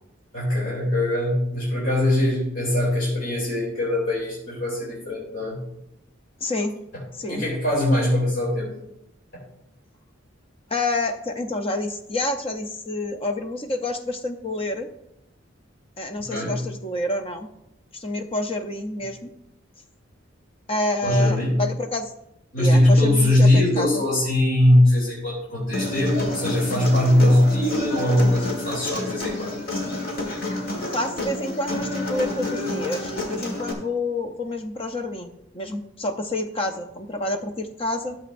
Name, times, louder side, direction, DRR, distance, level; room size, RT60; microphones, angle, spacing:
voice 1, 0.3-5.6 7.3-8.7 9.3-9.4 16.1-16.6 21.0-21.6 22.5-29.6, left 1 dB, 70° left, -5 dB, 3.1 m, -21 dB
voice 2, 6.4-6.7 7.2-7.4 10.7-14.9 16.0-17.5 17.9-19.3 20.7-22.1 22.6-24.0 30.9-38.2, left 2 dB, 30° left, 6 dB, 0.7 m, -28 dB
Human voice, 25.7-33.7, left 2 dB, 50° left, 1.8 m, -29 dB
13.0 x 7.6 x 2.6 m, 0.83 s
head